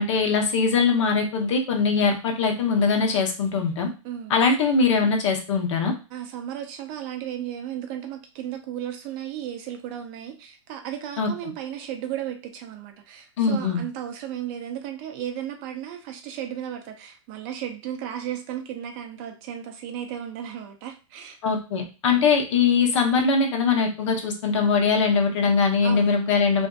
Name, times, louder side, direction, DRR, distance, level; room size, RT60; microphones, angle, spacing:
voice 1, 0.0-3.9 4.3-5.9 11.2-11.3 13.4-13.8 21.4-26.7, left 5 dB, 65° left, 2 dB, 0.8 m, -21 dB
voice 2, 4.0-4.5 6.1-21.4 22.1-22.3 25.8-26.3, right 10 dB, 30° right, 5 dB, 0.4 m, -35 dB
2.5 x 2.3 x 2.2 m, 0.32 s
hypercardioid pair, 155°, 17 cm